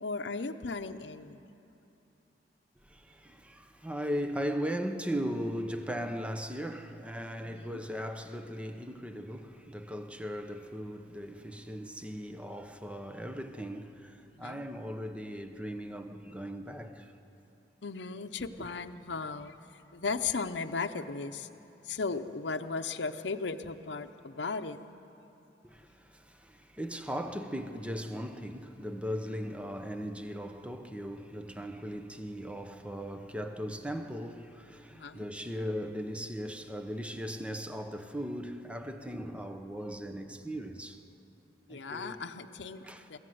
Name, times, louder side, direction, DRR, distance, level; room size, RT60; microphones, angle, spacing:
voice 1, 0.0-1.4 7.4-7.8 14.3-14.6 17.8-21.5 21.8-24.8 34.9-35.2 41.7-42.8 43.1-43.2, left 4 dB, 80° left, 0.7 m, -36 dB
voice 2, 2.8-17.2 25.6-41.0 41.7-42.2 42.8-43.1, equal, 5° right, 0.8 m, -38 dB
23.5 x 14.5 x 7.9 m
head